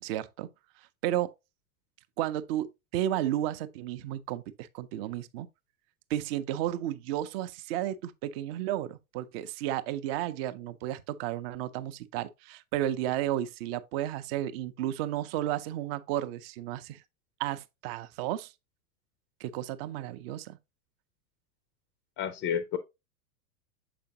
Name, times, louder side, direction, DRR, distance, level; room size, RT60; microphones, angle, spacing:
voice 1, 0.0-0.5 1.0-1.3 2.2-5.5 6.1-17.0 17.4-18.5 19.4-20.6, right 12 dB, 40° right, 0.6 m, -33 dB
voice 2, 22.2-22.8, left 8 dB, 30° left, 0.5 m, -30 dB
6.8 x 5.0 x 2.7 m
figure-of-eight pair, 90°, 45 cm